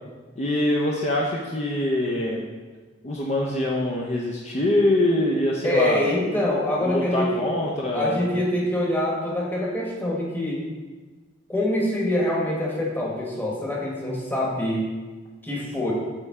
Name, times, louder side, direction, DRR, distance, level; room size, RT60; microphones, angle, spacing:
voice 1, 0.4-2.5 3.0-6.0 6.8-8.4, left 1 dB, 35° left, -3 dB, 0.5 m, -24 dB
voice 2, 5.6-7.4 7.9-10.6 11.5-14.9 15.4-15.9, left 1 dB, 10° left, -4 dB, 1.1 m, -25 dB
8.8 x 3.3 x 3.6 m, 1.3 s
head